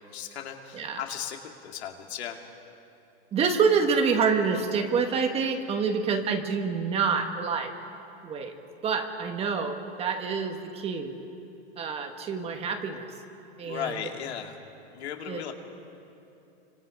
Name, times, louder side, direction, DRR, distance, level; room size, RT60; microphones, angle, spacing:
voice 1, 0.0-1.4 1.6-2.4 13.6-14.6 14.9-15.5, left 9 dB, 80° left, 3 dB, 2.6 m, -36 dB
voice 2, 3.3-7.7 8.2-8.5 8.8-11.1 11.8-13.1 13.6-14.0 15.3-15.5, right 5 dB, 20° right, 5 dB, 1.3 m, -27 dB
29.0 x 25.5 x 5.3 m, 2.8 s
supercardioid pair, 155°, 32 cm